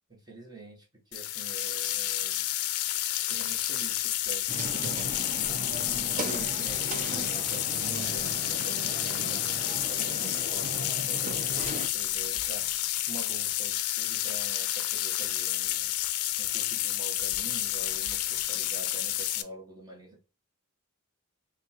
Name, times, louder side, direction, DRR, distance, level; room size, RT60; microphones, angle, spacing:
voice 1, 0.1-2.5 3.2-5.3 5.8-11.4 11.7-20.2, right 4 dB, 20° right, 1.0 m, -46 dB
sound 1, 1.1-19.4, left 13 dB, 80° left, 0.4 m, -30 dB
sound 2, 4.5-11.9, right 3 dB, 35° right, 0.5 m, -38 dB
5.9 x 2.2 x 2.8 m
head